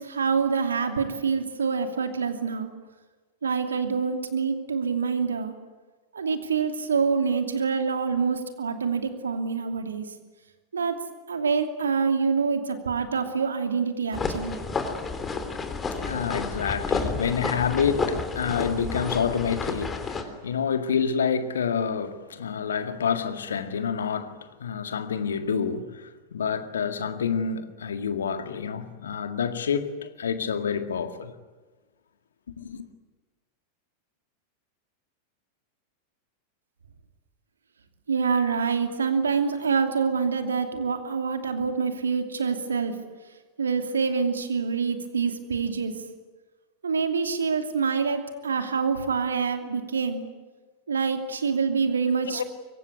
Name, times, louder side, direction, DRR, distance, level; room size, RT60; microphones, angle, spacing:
voice 1, 0.0-2.7 3.4-5.5 6.1-10.1 10.7-11.0 11.3-14.6 38.1-43.0 43.6-46.0 46.8-50.2 50.9-52.4, right 5 dB, 70° right, 2.8 m, -26 dB
sound 1, 14.1-20.2, left 4 dB, 20° left, 3.5 m, -30 dB
voice 2, 15.9-31.3 32.6-32.9 52.3-52.4, left 6 dB, 65° left, 1.9 m, -28 dB
25.0 x 24.0 x 9.6 m
figure-of-eight pair, 90°, 0 cm